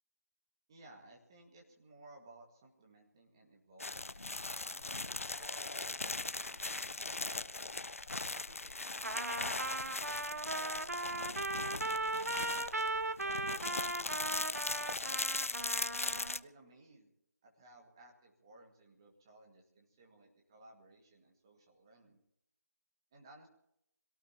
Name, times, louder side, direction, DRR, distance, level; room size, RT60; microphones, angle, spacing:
voice 1, 0.7-4.9 5.3-7.6 8.3-12.7 13.2-15.8 16.3-17.1 17.4-22.2 23.1-23.5, right 2 dB, 15° right, 0 dB, 2.0 m, -60 dB
sound 1, 3.8-16.4, left 3 dB, 45° left, 0.6 m, -39 dB
Trumpet, 9.0-16.4, right 2 dB, 55° right, 1.0 m, -38 dB
25.5 x 18.0 x 3.0 m, 0.79 s
figure-of-eight pair, 170°, 10 cm